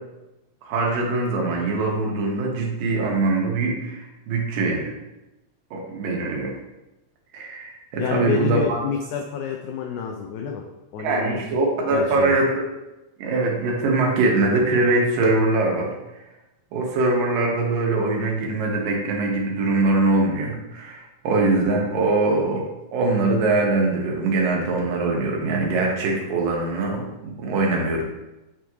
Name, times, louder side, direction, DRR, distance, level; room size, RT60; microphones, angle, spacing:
voice 1, 0.6-4.9 5.7-6.6 7.3-8.8 11.0-12.7 13.2-15.9 16.7-28.0, right 2 dB, 80° right, -1 dB, 2.8 m, -22 dB
voice 2, 8.0-10.6 10.9-11.4 11.9-12.4, left 7 dB, 80° left, 1 dB, 1.9 m, -28 dB
8.8 x 3.1 x 3.6 m, 0.98 s
omnidirectional pair, 3.9 m